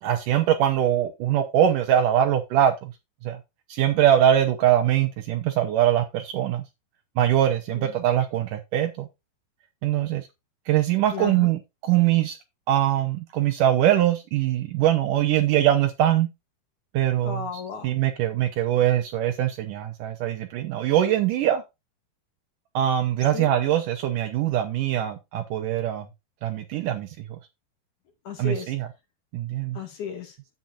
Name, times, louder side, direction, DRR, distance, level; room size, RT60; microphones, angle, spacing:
voice 1, 0.0-2.9 3.2-3.4 3.7-6.6 7.2-9.1 9.8-10.3 10.7-12.4 12.7-16.3 16.9-17.4 17.8-21.6 22.7-26.1 26.4-27.3 28.4-28.9 29.3-29.8, right 11 dB, 75° right, 2.0 m, -22 dB
voice 2, 11.1-11.5 17.2-17.9 23.3-23.5 28.2-28.7 29.7-30.4, left 7 dB, 55° left, 2.6 m, -34 dB
9.9 x 9.0 x 2.5 m
omnidirectional pair, 4.8 m